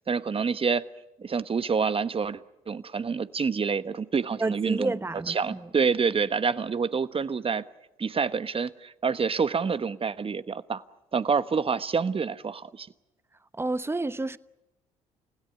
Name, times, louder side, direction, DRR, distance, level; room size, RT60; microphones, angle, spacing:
voice 1, 0.1-0.8 1.2-2.4 2.7-4.9 5.3-7.6 8.0-10.8 11.1-12.9, right 5 dB, 35° right, 1.2 m, -27 dB
voice 2, 4.4-5.7 13.6-14.4, right 2 dB, 15° right, 1.0 m, -30 dB
30.0 x 17.0 x 9.6 m
hypercardioid pair, 55°, 16 cm